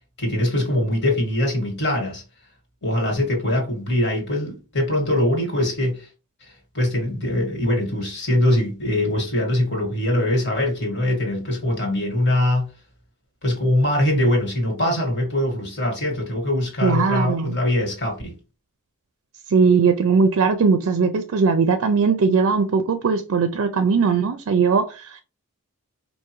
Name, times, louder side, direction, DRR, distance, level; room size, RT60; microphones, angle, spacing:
voice 1, 0.2-2.2 2.8-6.1 6.5-12.7 13.4-18.3, left 1 dB, 55° left, 1.7 m, -22 dB
voice 2, 16.8-17.6 19.5-25.2, right 5 dB, 65° right, 0.4 m, -19 dB
4.7 x 2.6 x 3.0 m
head